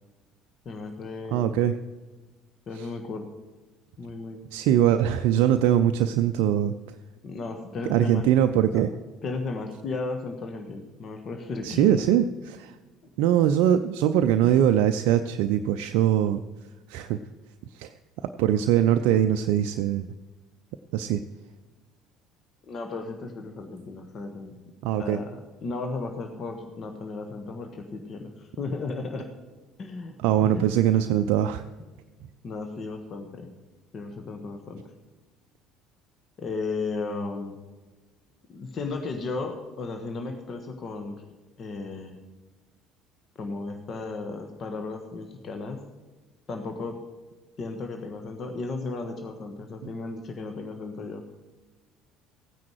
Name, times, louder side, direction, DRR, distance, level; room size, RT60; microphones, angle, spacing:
voice 1, 0.6-1.7 2.7-3.3 4.0-4.4 7.2-8.3 8.7-8.8 9.2-11.9 14.4-14.5 22.7-24.5 25.0-25.3 25.6-29.3 29.8-30.6 32.4-33.5 33.9-34.8 36.4-37.6 38.5-41.2 41.6-42.2 43.4-45.8 46.5-47.0 47.6-51.2, left 3 dB, 40° left, 4 dB, 1.4 m, -35 dB
voice 2, 1.3-1.8 2.8-2.9 4.5-6.7 7.9-8.9 11.6-12.7 13.2-16.4 16.9-17.2 17.7-17.9 18.4-20.1 20.9-21.2 24.8-25.2 30.2-31.6, right 10 dB, 60° right, 7 dB, 0.5 m, -22 dB
15.0 x 9.4 x 4.7 m, 1.3 s
figure-of-eight pair, 60°, 0 cm